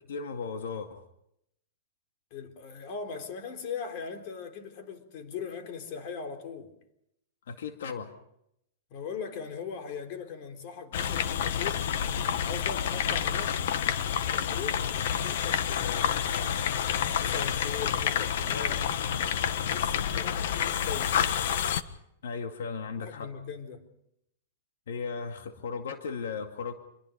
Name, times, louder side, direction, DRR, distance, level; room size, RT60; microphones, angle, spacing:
voice 1, 0.1-1.0 7.5-8.1 22.2-23.3 24.9-26.7, left 5 dB, 85° left, 2.2 m, -36 dB
voice 2, 2.3-6.7 8.9-11.9 12.5-13.6 14.2-16.6 17.0-18.9 19.3-21.2 23.0-23.8, left 6 dB, 45° left, 3.9 m, -40 dB
sound 1, 10.9-21.8, left 8 dB, 65° left, 1.4 m, -29 dB
27.5 x 22.5 x 5.3 m
supercardioid pair, 150°, 0 cm